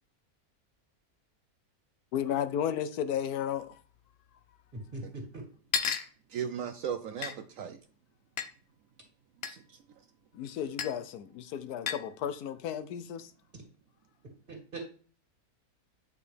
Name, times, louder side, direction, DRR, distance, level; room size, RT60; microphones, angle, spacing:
voice 1, 2.1-3.8 10.3-13.3, left 9 dB, 85° left, 1.2 m, -33 dB
sound 1, 3.7-3.8 4.0-4.1 5.0-5.1 5.7-6.1 7.2-7.3 8.4-8.5 9.4-9.6 10.8-11.0 11.9-12.1, left 6 dB, 55° left, 0.8 m, -32 dB
voice 2, 4.7-5.2 14.5-14.8, right 2 dB, 35° right, 2.3 m, -40 dB
voice 3, 6.3-7.8 9.5-10.0, right 8 dB, 70° right, 0.9 m, -37 dB
8.8 x 5.2 x 3.3 m
omnidirectional pair, 1.6 m